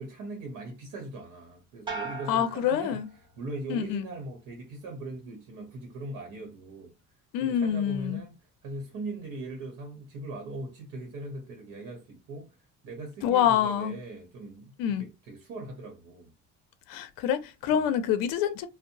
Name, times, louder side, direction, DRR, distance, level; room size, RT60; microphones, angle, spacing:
voice 1, 0.0-3.0 3.4-6.9 7.4-8.4 8.6-12.6 12.8-16.3 17.7-17.8, right 2 dB, 60° right, 1.0 m, -40 dB
sound 1, 1.9-3.6 4.0-4.6, right 4 dB, 15° right, 0.6 m, -41 dB
voice 2, 2.3-3.1 3.7-4.1 7.3-8.2 13.2-13.9 14.8-15.1 16.9-18.7, left 9 dB, 85° left, 0.5 m, -26 dB
2.6 x 2.0 x 2.7 m
cardioid pair, 160°, 33 cm